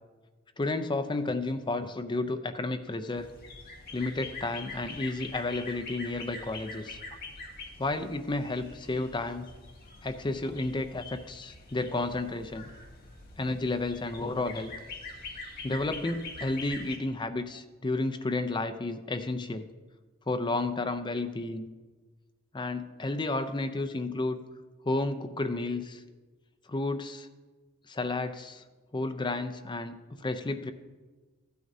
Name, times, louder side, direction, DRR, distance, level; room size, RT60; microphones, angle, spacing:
voice 1, 0.6-3.3 3.9-7.0 7.8-9.5 10.0-12.7 13.4-14.7 15.6-19.7 20.3-21.7 22.5-24.4 24.8-26.0 26.7-27.3 27.9-28.6 28.9-30.7, left 2 dB, 20° left, 9 dB, 0.5 m, -32 dB
sound 1, 3.2-17.0, left 3 dB, 45° left, 1.5 m, -44 dB
14.5 x 9.3 x 2.7 m, 1.3 s
head